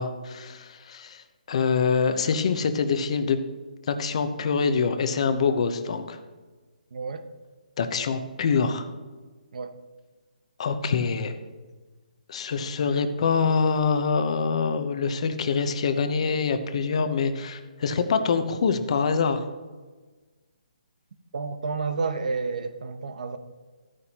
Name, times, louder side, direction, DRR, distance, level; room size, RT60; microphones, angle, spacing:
voice 1, 0.0-3.4 3.9-6.2 7.8-8.9 10.6-11.3 12.3-19.4, left 5 dB, 45° left, 0.9 m, -25 dB
voice 2, 6.9-7.3 9.5-9.8 21.3-23.4, right 4 dB, 60° right, 0.9 m, -30 dB
14.0 x 9.7 x 2.9 m
hypercardioid pair, 165°, 5 cm